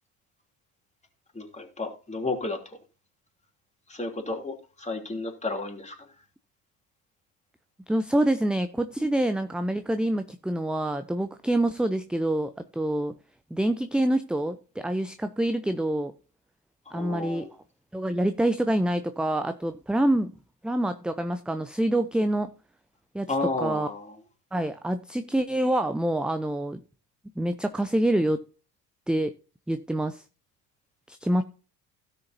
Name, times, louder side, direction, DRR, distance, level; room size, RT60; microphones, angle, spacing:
voice 1, 1.3-2.8 3.9-6.1 16.9-17.5 23.3-24.2, left 3 dB, 15° left, 2 dB, 3.1 m, -32 dB
voice 2, 7.9-13.1 13.5-16.1 16.9-17.5 17.9-20.3 20.6-22.5 23.1-23.3 23.6-23.9 24.5-26.8 27.4-28.4 29.1-29.3 29.7-30.2 31.1-31.4, right 1 dB, ahead, 10 dB, 0.5 m, -26 dB
16.5 x 6.8 x 2.7 m, 0.35 s
figure-of-eight pair, 55°, 45 cm